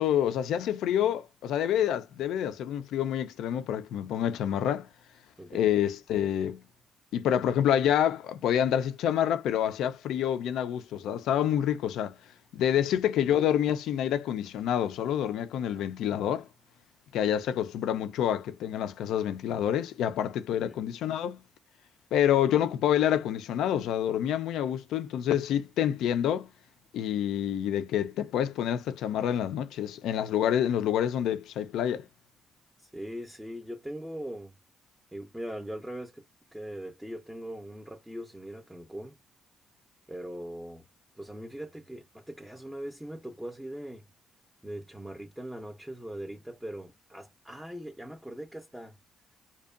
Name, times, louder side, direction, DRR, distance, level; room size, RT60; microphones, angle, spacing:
voice 1, 0.0-4.9 5.5-6.6 7.1-12.1 12.5-16.5 17.1-21.4 22.1-26.5 26.9-32.0, left 10 dB, 85° left, 0.3 m, -27 dB
voice 2, 5.4-5.7 12.7-13.0 20.6-20.8 32.8-34.6 35.1-36.2 36.5-39.2 40.1-40.8 41.2-44.1 44.6-48.9, right 1 dB, 5° right, 0.5 m, -40 dB
2.6 x 2.1 x 2.4 m
cardioid pair, 90°, 0 cm